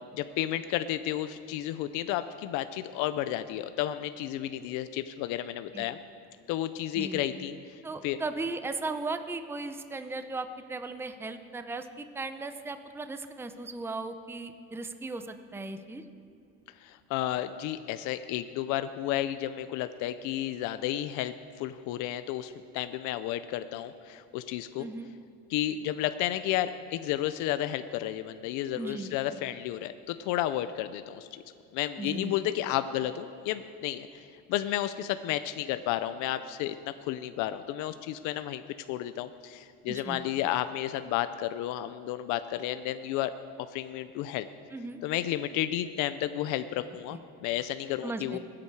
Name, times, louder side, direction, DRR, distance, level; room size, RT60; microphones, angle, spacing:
voice 1, 0.1-6.0 6.5-8.2 16.8-24.9 25.5-31.4 31.7-38.6 38.9-43.3 43.7-44.5 45.0-48.4, left 13 dB, 75° left, 11 dB, 0.6 m, -32 dB
voice 2, 7.8-16.0 24.8-25.1 28.8-29.2 32.0-32.3 39.9-40.2 44.7-45.0 48.0-48.4, right 3 dB, 10° right, 9 dB, 0.6 m, -37 dB
22.5 x 8.7 x 4.7 m, 2.7 s
cardioid pair, 120°, 31 cm